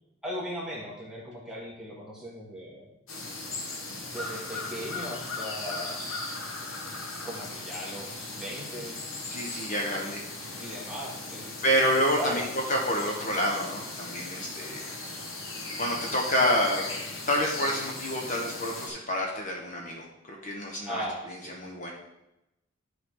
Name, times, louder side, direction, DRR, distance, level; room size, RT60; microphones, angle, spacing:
voice 1, 0.2-2.9 3.8-6.0 7.2-9.0 9.9-10.1 10.6-11.6 12.1-12.4 20.9-21.6, equal, 5° right, -5 dB, 1.8 m, -38 dB
sound 1, 3.1-18.9, left 2 dB, 80° left, 1.3 m, -38 dB
voice 2, 9.3-10.2 10.5-10.7 11.6-14.9 15.8-16.8 17.3-21.0 21.5-21.9, equal, 40° left, -1 dB, 1.3 m, -28 dB
11.0 x 4.9 x 3.8 m, 0.90 s
head